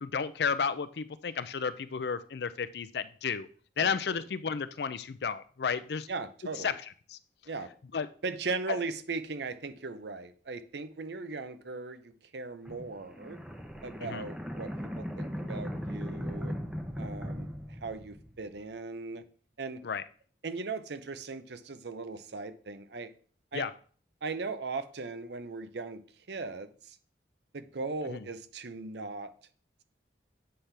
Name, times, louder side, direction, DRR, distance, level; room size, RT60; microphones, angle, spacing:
voice 1, 0.0-3.5 3.8-6.1 6.6-6.7 7.1-7.2 7.9-8.1 14.0-14.2 19.8-20.0 23.5-23.7 28.1-28.3, left 6 dB, 65° left, 13 dB, 0.4 m, -32 dB
voice 2, 3.8-4.3 6.1-6.8 7.5-7.7 8.2-13.4 13.8-16.5 17.0-17.5 17.8-19.2 19.6-19.8 20.4-23.1 23.5-23.6 24.2-26.0 26.3-27.0 27.5-29.3, right 4 dB, 70° right, 11 dB, 0.7 m, -38 dB
sound 1, 12.6-18.5, equal, 5° right, 0.7 m, -38 dB
7.7 x 5.7 x 3.4 m, 0.44 s
head